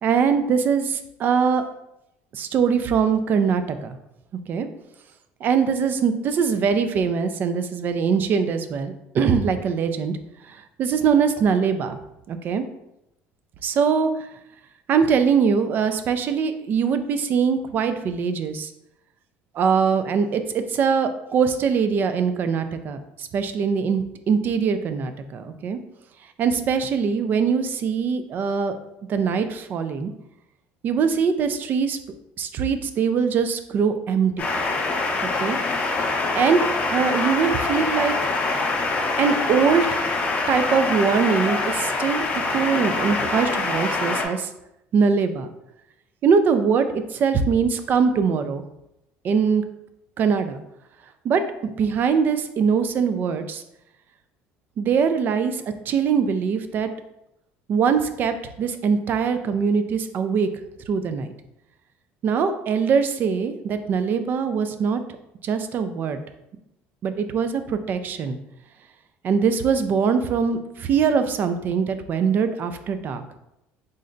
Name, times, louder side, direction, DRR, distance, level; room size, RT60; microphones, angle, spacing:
voice 1, 0.0-1.6 2.3-4.0 4.5-4.7 5.4-10.2 10.4-12.0 12.3-12.6 13.6-14.3 14.9-18.7 19.5-25.8 26.4-28.8 29.1-30.1 30.8-32.0 32.4-34.4 35.4-35.6 36.3-38.2 39.2-40.0 40.5-42.2 42.5-44.5 44.9-45.5 46.2-48.6 49.2-49.6 50.2-50.6 51.2-53.6 54.8-56.9 57.7-60.5 60.9-61.3 62.2-65.0 65.4-66.2 67.0-68.4 69.2-73.2, right 6 dB, 40° right, 9 dB, 0.3 m, -22 dB
sound 1, 34.4-44.2, left 3 dB, 30° left, 0.6 m, -24 dB
3.7 x 2.1 x 3.8 m, 0.85 s
cardioid pair, 140°, 5 cm